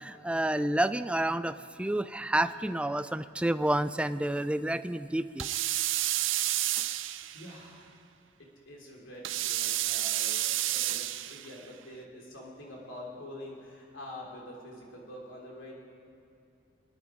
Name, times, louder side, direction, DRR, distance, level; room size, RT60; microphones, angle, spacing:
voice 1, 0.0-5.5, right 1 dB, 5° right, 12 dB, 0.3 m, -29 dB
sound 1, 5.4-7.5 9.2-11.5, right 14 dB, 65° right, 0.5 m, -30 dB
voice 2, 7.3-8.0 8.4-15.7, left 1 dB, 70° left, -2 dB, 3.2 m, -46 dB
27.0 x 9.5 x 5.0 m, 2.6 s
head